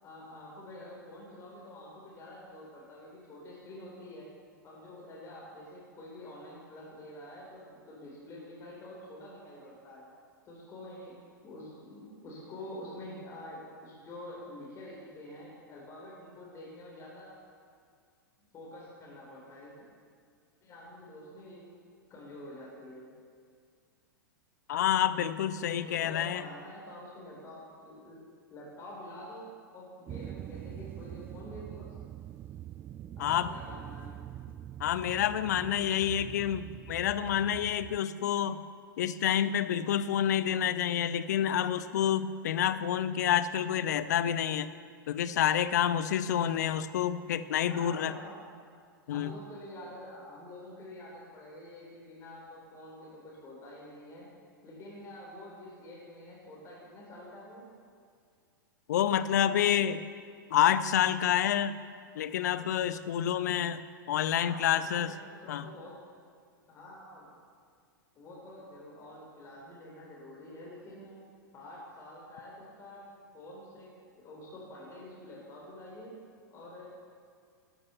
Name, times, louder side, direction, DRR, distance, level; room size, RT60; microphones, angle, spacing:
voice 1, 0.0-4.3 4.6-10.1 10.5-17.4 18.5-19.8 20.6-21.8 22.1-23.1 25.8-28.2 28.5-31.9 33.2-34.2 47.6-48.4 49.1-54.3 54.6-57.7 64.3-66.0 66.7-67.4 68.1-71.2 71.5-73.9 74.2-76.2 76.5-76.8, left 1 dB, 25° left, -4 dB, 4.1 m, -47 dB
voice 2, 24.7-26.4 33.2-33.5 34.8-38.6 39.0-44.7 45.1-48.1 49.1-49.3 58.9-60.0 60.5-61.8 62.2-65.1 65.5-65.7, left 10 dB, 55° left, 14 dB, 0.7 m, -28 dB
sound 1, 30.1-38.0, right 11 dB, 20° right, 0.3 m, -44 dB
13.0 x 12.0 x 7.0 m, 2.1 s
figure-of-eight pair, 100°, 11 cm